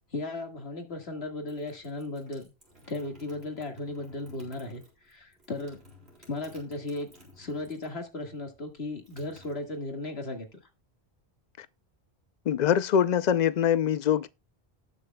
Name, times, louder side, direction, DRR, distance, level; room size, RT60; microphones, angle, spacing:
voice 1, 0.1-2.5 2.9-4.8 5.1-5.8 6.3-7.1 7.4-10.5, left 2 dB, 80° left, 2.1 m, -36 dB
sound 1, 1.4-8.0 8.3-10.1, equal, 80° right, 3.9 m, -55 dB
voice 2, 12.5-14.3, left 9 dB, 50° left, 0.6 m, -24 dB
18.5 x 6.3 x 2.2 m
omnidirectional pair, 1.1 m